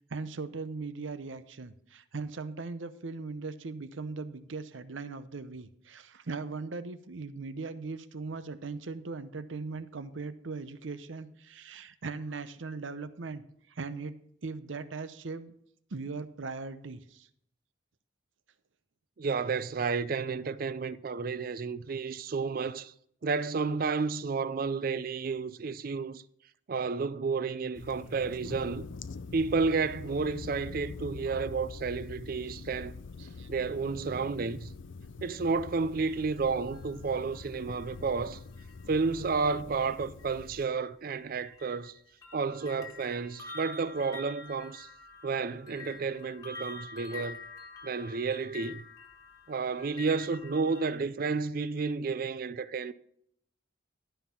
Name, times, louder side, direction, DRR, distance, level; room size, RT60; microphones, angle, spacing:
voice 1, 0.1-13.4 13.7-15.5 15.9-17.3 33.2-33.5, right 4 dB, 75° right, 0.7 m, -39 dB
voice 2, 19.2-22.9 23.2-26.2 26.7-28.9 29.3-32.9 33.5-34.7 35.2-38.4 38.9-41.9 42.3-44.9 45.2-47.4 47.8-48.8 49.5-52.9, right 4 dB, 45° right, 0.4 m, -31 dB
sound 1, 27.8-40.7, left 4 dB, 70° left, 0.5 m, -45 dB
sound 2, 36.1-39.2 40.2-40.3 41.1-51.0, left 4 dB, 20° left, 1.5 m, -47 dB
12.0 x 5.6 x 5.8 m
head